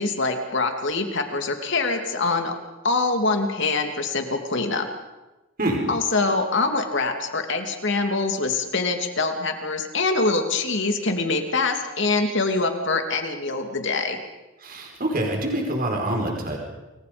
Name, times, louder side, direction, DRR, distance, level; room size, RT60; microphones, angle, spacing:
voice 1, 0.0-2.5 2.8-4.9 5.9-14.2, left 3 dB, 60° left, 5 dB, 2.9 m, -24 dB
voice 2, 14.6-16.6, right 1 dB, 45° right, 1 dB, 5.0 m, -25 dB
29.0 x 24.0 x 5.3 m, 1.1 s
head